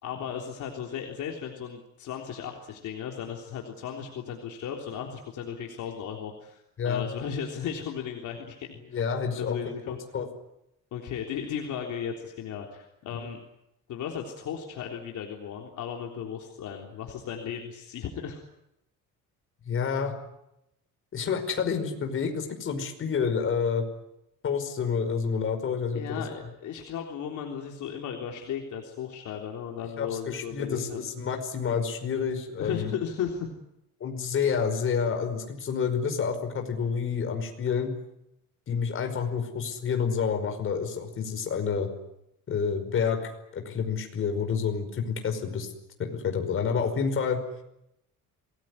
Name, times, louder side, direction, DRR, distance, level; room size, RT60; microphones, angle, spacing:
voice 1, 0.0-10.0 10.9-13.4 13.9-18.4 25.9-31.1 32.6-33.5, left 8 dB, 65° left, 1 dB, 3.6 m, -36 dB
voice 2, 8.9-9.7 10.1-10.3 13.1-13.2 19.7-20.1 21.1-23.8 24.4-26.2 30.0-32.9 34.0-37.9 38.7-41.9 42.5-45.7 46.0-47.4, left 6 dB, 40° left, 5 dB, 5.2 m, -29 dB
26.5 x 19.5 x 9.8 m, 0.85 s
cardioid pair, 160°, 32 cm